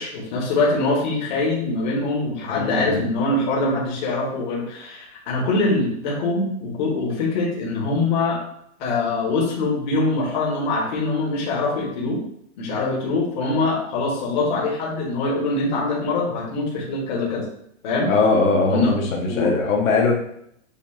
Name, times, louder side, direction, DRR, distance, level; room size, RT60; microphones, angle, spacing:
voice 1, 0.0-8.4 8.8-12.2 12.6-17.4 17.8-18.1 18.7-18.9 19.3-19.5, left 3 dB, 35° left, -4 dB, 1.4 m, -23 dB
voice 2, 2.6-3.1 18.1-20.1, left 3 dB, 80° left, -1 dB, 1.3 m, -20 dB
7.1 x 2.7 x 2.7 m, 0.72 s
hypercardioid pair, 170°, 40 cm